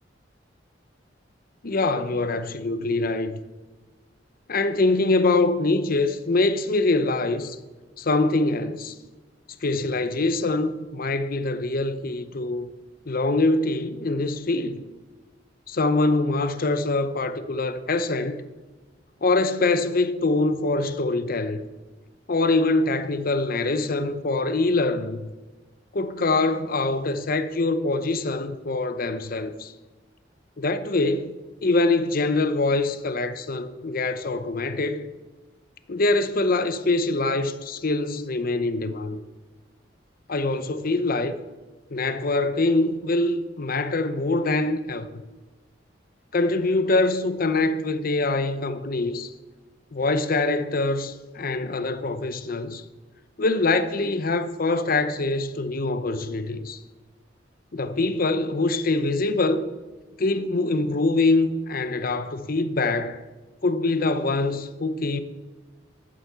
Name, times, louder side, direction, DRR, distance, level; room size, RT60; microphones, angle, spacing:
voice 1, 1.6-3.4 4.5-7.6 8.0-8.9 9.6-12.7 13.1-14.8 15.7-18.4 19.2-21.7 22.3-25.3 25.9-29.7 30.6-31.3 31.6-35.1 35.9-39.2 40.3-41.4 41.9-45.1 46.3-49.3 49.9-52.8 53.4-56.8 57.7-59.6 60.2-63.2 63.6-65.2, left 2 dB, 50° left, 0.7 m, -24 dB
12.0 x 7.7 x 6.8 m
head